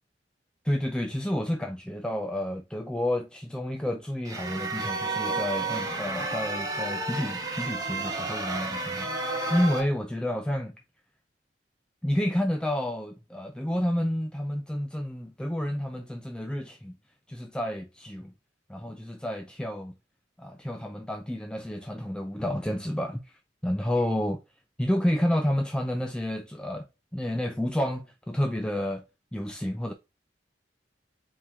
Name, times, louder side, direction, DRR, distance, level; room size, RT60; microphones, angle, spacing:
voice 1, 0.6-10.8 12.0-16.9 17.3-18.3 18.7-19.9 20.4-23.3 23.6-24.4 24.8-26.9 27.1-29.0 29.3-29.9, left 1 dB, 5° left, 0.3 m, -30 dB
sound 1, 4.2-9.8, right 3 dB, 20° right, 1.1 m, -31 dB
4.6 x 2.9 x 3.4 m
head